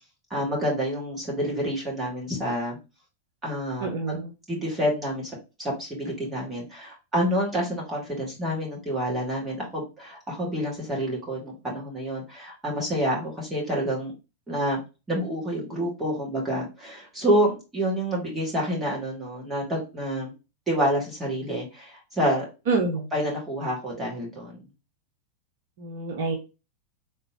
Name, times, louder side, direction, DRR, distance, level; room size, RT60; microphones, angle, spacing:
voice 1, 0.3-2.8 3.4-4.2 4.5-5.3 5.6-14.1 14.5-14.8 15.1-20.3 20.7-22.5 23.1-24.6, equal, 15° right, -3 dB, 2.2 m, -28 dB
voice 2, 3.8-4.3 22.7-23.1 25.8-26.3, right 4 dB, 55° right, 3 dB, 0.7 m, -27 dB
3.8 x 3.4 x 3.0 m, 0.28 s
figure-of-eight pair, 90°, 0 cm